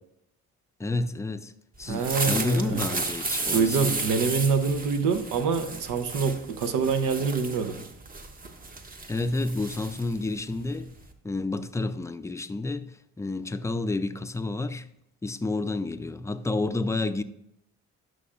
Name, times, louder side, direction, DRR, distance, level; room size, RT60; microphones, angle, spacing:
voice 1, 0.8-1.5 1.8-4.0 9.1-10.9 11.2-12.9 13.2-14.9 15.2-17.2, left 2 dB, 10° left, 0.4 m, -30 dB
sound 1, 1.8-11.1, right 3 dB, 30° right, 0.9 m, -34 dB
voice 2, 1.9-2.9 3.5-7.8, right 5 dB, 85° right, 0.8 m, -25 dB
11.0 x 6.2 x 2.5 m
cardioid pair, 90°, 30 cm